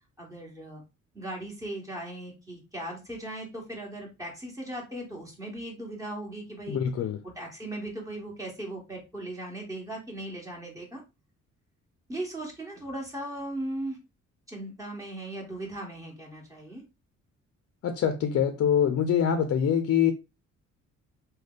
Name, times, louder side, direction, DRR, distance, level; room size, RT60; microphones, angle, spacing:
voice 1, 0.2-0.8 1.1-6.8 7.2-11.0 12.1-14.0 14.5-16.8, right 1 dB, 10° right, 1.6 m, -38 dB
voice 2, 6.7-7.2 17.8-20.1, left 8 dB, 50° left, 0.5 m, -24 dB
3.2 x 2.2 x 3.8 m
cardioid pair, 90°, 30 cm